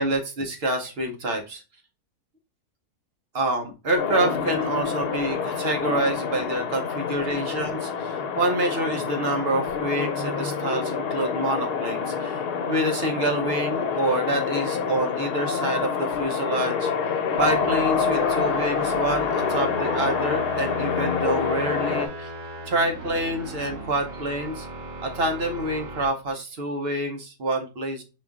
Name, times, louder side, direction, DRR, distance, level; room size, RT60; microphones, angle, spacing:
voice 1, 0.0-1.6 3.3-22.3 22.7-24.7 25.0-28.0, right 1 dB, 50° right, 4 dB, 0.9 m, -27 dB
sound 1, 4.0-22.1, left 6 dB, 85° left, 1.2 m, -27 dB
sound 2, 17.3-26.1, right 1 dB, 80° right, 1.4 m, -37 dB
4.9 x 2.5 x 3.4 m, 0.31 s
omnidirectional pair, 1.6 m